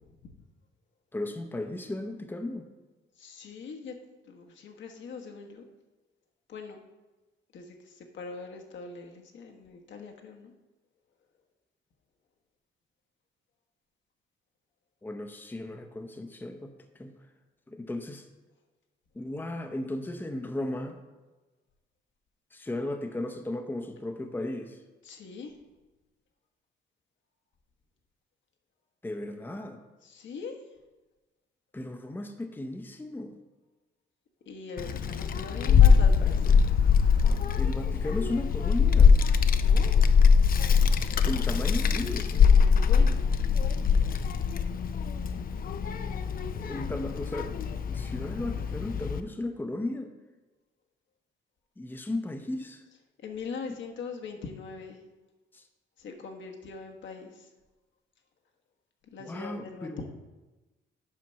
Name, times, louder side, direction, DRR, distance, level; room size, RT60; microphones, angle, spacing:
voice 1, 1.1-2.7 15.0-17.1 17.7-18.3 19.1-21.0 22.5-24.8 29.0-29.8 31.7-33.4 37.6-39.2 41.3-42.3 46.6-47.5 47.8-50.1 51.8-52.8 55.5-55.6 59.2-60.1, left 1 dB, 10° left, 5 dB, 0.7 m, -35 dB
voice 2, 3.2-4.0 4.2-5.6 6.5-6.8 7.5-10.5 25.0-25.5 30.0-30.6 34.5-36.7 39.5-40.0 42.7-43.3 53.2-55.0 56.0-57.5 59.1-60.1, left 5 dB, 70° left, 2 dB, 1.3 m, -41 dB
Child speech kid speaking, 34.8-49.2, left 6 dB, 45° left, 0.5 m, -23 dB
7.6 x 5.2 x 5.6 m, 1.2 s
cardioid pair, 90°, 20 cm